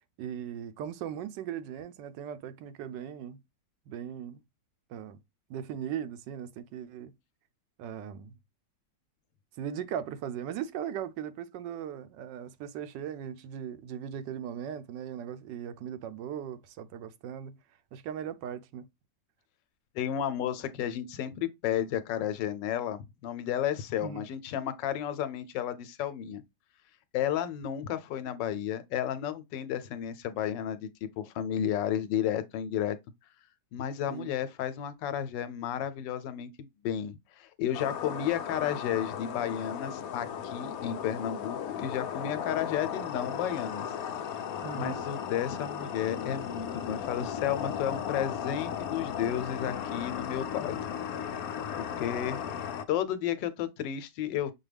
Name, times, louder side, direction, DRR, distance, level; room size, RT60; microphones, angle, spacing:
voice 1, 0.2-3.4 3.9-4.4 4.9-5.2 5.5-7.1 7.8-8.4 9.6-17.6 17.9-18.9 24.0-24.2 34.1-34.3 44.6-45.0, right 9 dB, 80° right, 1.2 m, -38 dB
voice 2, 19.9-26.4 27.1-33.0 33.7-43.9 44.7-51.0 51.7-52.4 52.9-54.5, left 10 dB, 85° left, 1.3 m, -32 dB
sound 1, 37.7-52.8, left 8 dB, 70° left, 0.9 m, -36 dB
6.2 x 2.2 x 3.3 m
omnidirectional pair, 1.9 m